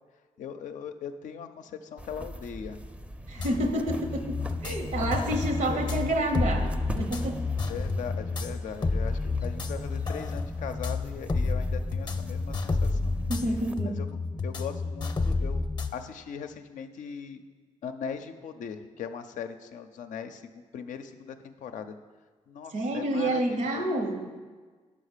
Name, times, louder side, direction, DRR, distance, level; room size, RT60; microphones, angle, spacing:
voice 1, 0.4-2.8 5.7-5.9 7.6-13.2 13.8-14.1 14.4-15.7 15.9-17.4 17.8-22.0 22.5-23.9, left 7 dB, 80° left, 8 dB, 0.5 m, -39 dB
sound 1, 2.0-13.7, right 1 dB, 10° right, 0.5 m, -40 dB
voice 2, 3.3-7.5 13.3-14.0 22.7-24.3, right 1 dB, 75° right, 5 dB, 0.9 m, -29 dB
sound 2, 3.4-15.9, left 3 dB, 35° left, 0.6 m, -30 dB
5.6 x 5.0 x 6.6 m, 1.4 s
cardioid pair, 65°, 13 cm